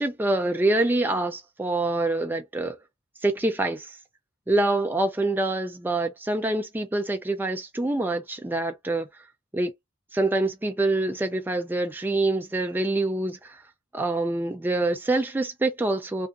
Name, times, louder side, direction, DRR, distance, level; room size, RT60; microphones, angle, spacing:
voice 1, 0.0-2.8 3.2-3.9 4.5-9.1 9.5-9.7 10.1-13.6 13.9-16.3, right 2 dB, 10° right, 0.4 m, -25 dB
2.4 x 2.2 x 2.5 m
head